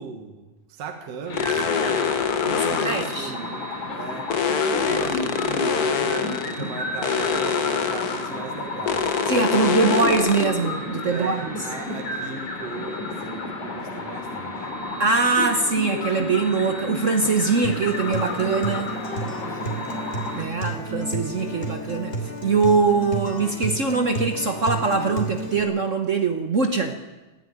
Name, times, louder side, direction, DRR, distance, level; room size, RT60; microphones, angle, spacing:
voice 1, 0.0-9.9 11.0-14.7 19.5-19.9, right 5 dB, 60° right, 3 dB, 2.8 m, -37 dB
sound 1, 1.3-20.4, left 2 dB, 80° left, 4.8 m, -32 dB
sound 2, 1.3-3.2 4.3-6.6 7.0-8.3 8.9-10.5, left 6 dB, 60° left, 0.9 m, -24 dB
voice 2, 2.5-3.3 4.9-5.0 9.3-11.7 15.0-19.0 20.3-22.1 22.4-27.0, right 4 dB, 85° right, 5 dB, 0.6 m, -22 dB
Acoustic guitar, 17.6-25.6, right 2 dB, 20° left, 3.3 m, -31 dB
21.0 x 14.5 x 9.5 m, 1.1 s
omnidirectional pair, 3.4 m